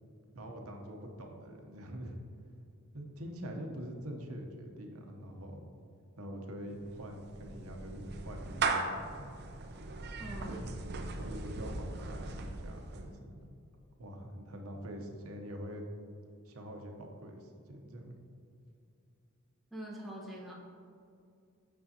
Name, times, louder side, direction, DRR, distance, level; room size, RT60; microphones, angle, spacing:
voice 1, 0.0-2.2 2.9-5.6 6.2-9.3 10.5-10.9 11.1-13.6 14.0-15.8 16.4-18.2, equal, 75° right, 2 dB, 0.9 m, -45 dB
Clapping / Meow, 6.7-13.1, right 3 dB, 50° right, 0.5 m, -38 dB
voice 2, 10.2-10.7 19.7-20.5, equal, ahead, -4 dB, 1.2 m, -43 dB
8.5 x 6.2 x 2.8 m, 2.5 s
head